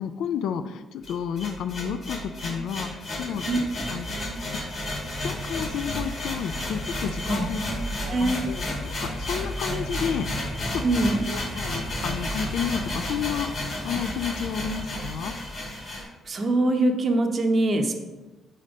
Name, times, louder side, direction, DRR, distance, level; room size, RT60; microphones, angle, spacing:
voice 1, 0.0-3.5 3.9-4.1 5.2-7.6 8.2-13.5 13.8-15.3, left 8 dB, 80° left, 10 dB, 0.3 m, -31 dB
sound 1, 1.0-16.0, left 1 dB, 60° left, 2.2 m, -31 dB
voice 2, 8.1-8.4 10.8-11.2 15.8-17.9, right 2 dB, 40° right, 4 dB, 0.7 m, -23 dB
5.0 x 4.2 x 5.0 m, 1.1 s
cardioid pair, 90°, 0 cm